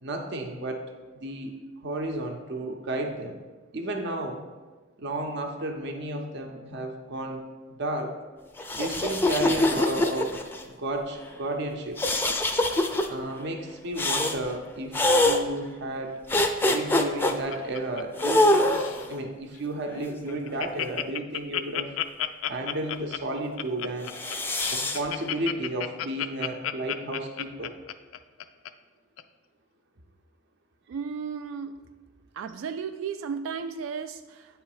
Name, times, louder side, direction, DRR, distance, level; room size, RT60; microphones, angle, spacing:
voice 1, 0.0-0.8 1.1-3.4 3.7-4.4 5.0-7.4 7.7-8.1 8.7-12.0 13.0-16.2 16.7-18.8 19.1-21.9 22.5-24.1 24.7-27.8, right 1 dB, 60° right, 3 dB, 0.7 m, -33 dB
sound 1, 8.6-10.6 12.0-13.1 14.0-14.4 14.9-15.4 16.3-17.3 18.2-19.1 19.9-21.0 24.1-25.0, left 1 dB, 10° left, 0.4 m, -24 dB
Laughter, 16.7-18.4 18.7-19.1 19.5-19.6 19.9-20.0 20.3-28.7 29.2-29.3, left 11 dB, 90° left, 0.3 m, -32 dB
voice 2, 30.9-31.8 32.4-34.6, right 6 dB, 85° right, 9 dB, 0.3 m, -34 dB
9.0 x 3.2 x 4.8 m, 1.3 s
head